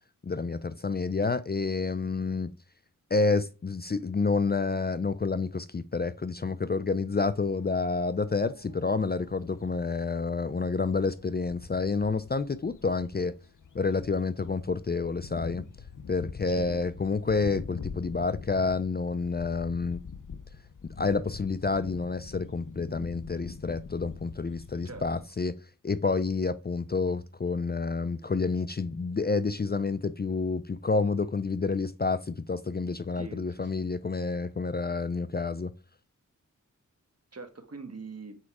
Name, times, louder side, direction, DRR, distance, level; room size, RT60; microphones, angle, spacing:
voice 1, 0.2-2.5 3.1-13.3 13.7-15.6 16.1-20.0 20.8-25.6 25.8-35.7, left 4 dB, 30° left, 0.4 m, -29 dB
sound 1, 7.1-25.2, left 6 dB, 70° left, 0.8 m, -45 dB
voice 2, 16.4-16.8 24.8-25.1 33.1-33.8 37.3-38.4, right 4 dB, 50° right, 1.5 m, -43 dB
7.4 x 4.6 x 4.8 m
wide cardioid pair, 65°, 32 cm